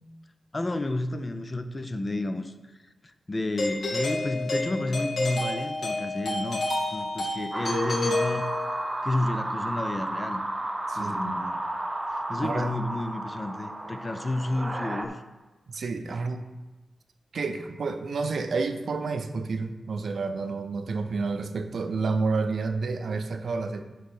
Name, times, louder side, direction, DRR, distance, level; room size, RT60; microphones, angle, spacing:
voice 1, 0.5-2.5 3.0-8.6 9.0-10.4 10.9-11.6 12.1-15.2 16.1-16.2, left 2 dB, 25° left, 9 dB, 0.5 m, -31 dB
Doorbell, 3.6-9.0, left 2 dB, 60° left, 2.1 m, -29 dB
sound 1, 7.5-15.1, right 1 dB, 20° right, 0.6 m, -32 dB
voice 2, 10.9-11.4 12.4-12.7 15.7-16.5 17.3-23.8, right 4 dB, 60° right, 8 dB, 0.6 m, -30 dB
11.5 x 3.8 x 5.5 m, 1.1 s
wide cardioid pair, 165°, 0 cm